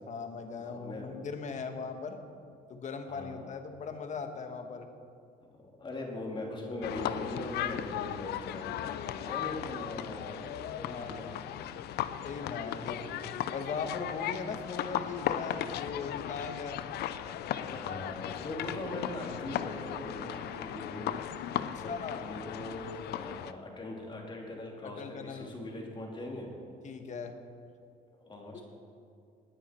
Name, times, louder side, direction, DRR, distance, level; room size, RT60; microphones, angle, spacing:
voice 1, 0.1-2.2 2.7-4.9 10.9-11.4 12.2-13.1 13.5-16.8 21.8-22.3 24.8-25.5 26.8-27.4, left 5 dB, 45° left, 6 dB, 1.5 m, -39 dB
voice 2, 0.6-1.2 3.1-3.5 5.4-11.7 13.0-13.2 17.6-21.9 22.2-26.5 28.1-28.6, left 1 dB, 30° left, -1 dB, 3.0 m, -41 dB
sound 1, 6.8-23.5, left 11 dB, 70° left, 0.6 m, -37 dB
19.5 x 9.9 x 4.5 m, 2.4 s
cardioid pair, 110°, 17 cm